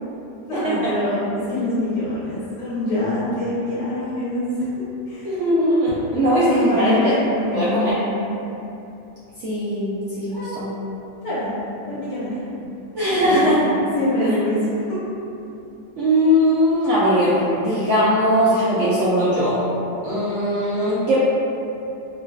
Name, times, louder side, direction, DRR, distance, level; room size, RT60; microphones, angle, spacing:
voice 1, 0.5-1.2 1.5-4.4 5.1-5.3 6.3-8.0 10.3-10.6 11.2-11.6 11.9-12.4 13.2-13.4 13.9-14.6, left 1 dB, 85° left, -12 dB, 1.5 m, -24 dB
voice 2, 5.2-7.1 7.5-8.0 9.4-10.7 12.9-13.7 16.0-19.6 20.0-21.2, equal, 70° right, -10 dB, 0.7 m, -19 dB
3.8 x 2.3 x 2.2 m, 2.8 s
omnidirectional pair, 1.8 m